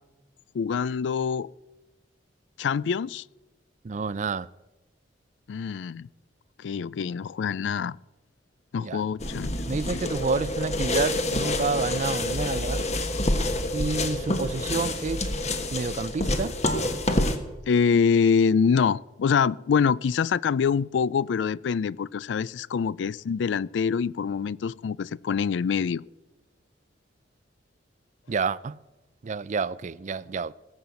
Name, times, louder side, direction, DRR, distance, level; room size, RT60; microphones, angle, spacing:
voice 1, 0.5-1.5 2.6-3.2 5.5-6.1 6.6-8.0 8.7-9.5 17.7-26.0, left 6 dB, 70° left, 0.4 m, -25 dB
voice 2, 3.8-4.5 8.8-9.0 9.7-12.8 13.7-15.3 15.7-16.5 28.3-28.8 29.2-30.5, right 4 dB, 40° right, 0.4 m, -29 dB
sound 1, 9.2-17.4, left 1 dB, 40° left, 1.4 m, -27 dB
18.0 x 7.9 x 7.0 m
head